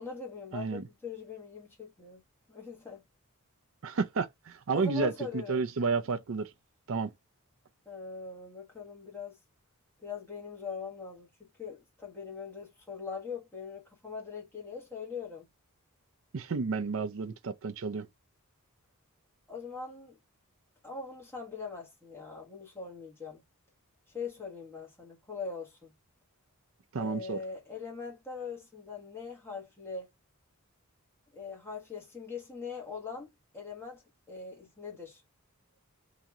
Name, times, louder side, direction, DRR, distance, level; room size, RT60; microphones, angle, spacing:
voice 1, 0.0-2.2 2.5-3.0 4.7-5.7 7.8-9.4 10.0-15.5 19.5-20.2 20.8-23.4 24.1-25.9 27.0-30.1 31.3-33.3 33.5-34.0 34.3-35.2, left 5 dB, 10° left, 1.4 m, -41 dB
voice 2, 0.5-0.8 3.8-6.5 6.9-7.1 16.3-18.1 26.9-27.4, right 4 dB, 60° right, 0.5 m, -31 dB
2.9 x 2.8 x 3.5 m
head